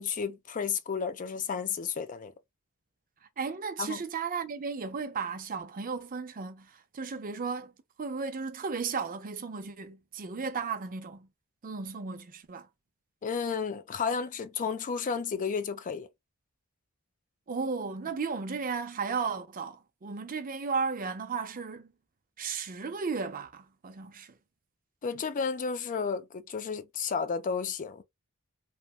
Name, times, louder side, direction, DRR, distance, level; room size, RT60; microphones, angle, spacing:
voice 1, 0.0-2.3 3.8-4.0 13.2-16.1 25.0-28.0, left 6 dB, 35° left, 0.4 m, -32 dB
voice 2, 3.4-7.7 8.0-11.3 11.6-12.7 17.5-21.9 22.4-24.3, right 5 dB, 40° right, 0.5 m, -35 dB
3.2 x 2.1 x 2.4 m
head